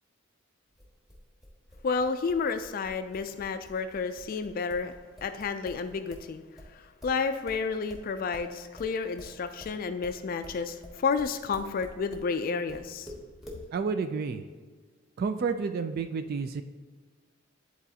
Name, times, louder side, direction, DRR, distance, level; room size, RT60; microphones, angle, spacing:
sound 1, 0.7-6.3 6.6-12.3 12.7-13.6, left 1 dB, ahead, 1.3 m, -48 dB
voice 1, 1.8-4.9 5.2-6.4 6.7-13.1, left 5 dB, 45° left, 9 dB, 0.3 m, -31 dB
voice 2, 13.7-14.4 15.2-16.6, right 5 dB, 50° right, 8 dB, 0.3 m, -30 dB
11.0 x 4.1 x 2.8 m, 1.5 s
head